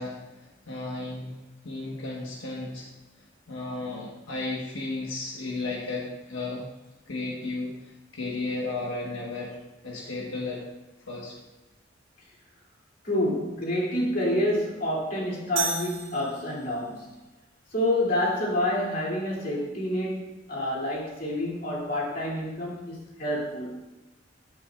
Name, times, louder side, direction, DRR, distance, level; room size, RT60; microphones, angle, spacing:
voice 1, 0.0-1.3 1.6-2.9 3.2-6.6 7.1-9.6 9.8-10.6 11.1-11.3, left 2 dB, 85° left, -3 dB, 1.4 m, -34 dB
voice 2, 13.0-17.2 17.7-23.8, left 1 dB, 45° left, -4 dB, 2.8 m, -28 dB
sound 1, 15.6-16.9, right 5 dB, 80° right, 1.8 m, -33 dB
11.0 x 8.5 x 2.4 m, 1.1 s
head